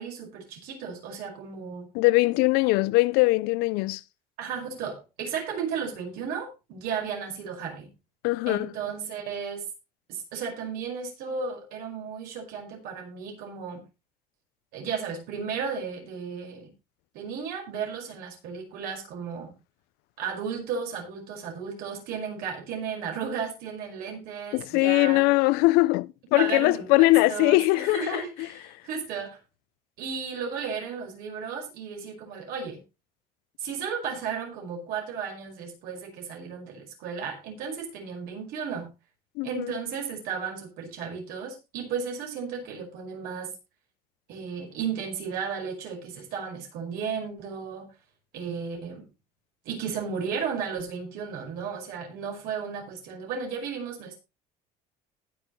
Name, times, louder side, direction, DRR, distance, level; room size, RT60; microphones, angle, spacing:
voice 1, 0.0-1.9 4.4-7.9 8.5-9.7 10.1-13.8 14.7-16.7 17.1-19.5 20.2-25.3 26.4-29.4 30.0-32.8 33.6-38.9 39.4-43.6 44.3-47.9 48.3-49.1 49.7-54.2, right 6 dB, 70° right, 5.4 m, -34 dB
voice 2, 1.9-4.0 8.2-8.7 24.5-28.2 39.4-39.7, left 22 dB, 80° left, 0.5 m, -21 dB
19.5 x 6.7 x 3.1 m
cardioid pair, 140°, 16 cm